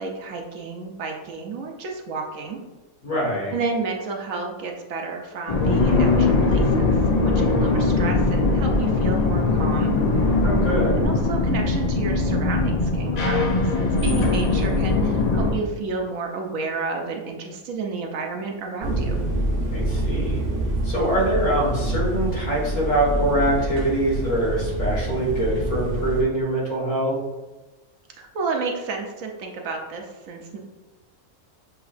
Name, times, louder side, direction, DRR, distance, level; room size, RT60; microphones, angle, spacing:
voice 1, 0.0-2.6 3.5-6.9 7.2-10.0 10.9-19.3 28.2-30.6, right 4 dB, 70° right, 2 dB, 1.0 m, -31 dB
voice 2, 3.0-3.5 10.4-10.9 19.7-20.4 20.8-27.2, right 1 dB, 85° left, -5 dB, 2.0 m, -24 dB
sound 1, 5.5-15.5, left 3 dB, 60° left, 0.4 m, -20 dB
sound 2, 18.8-26.2, right 1 dB, 45° right, 1.0 m, -26 dB
7.0 x 2.9 x 2.5 m, 1.1 s
omnidirectional pair, 1.5 m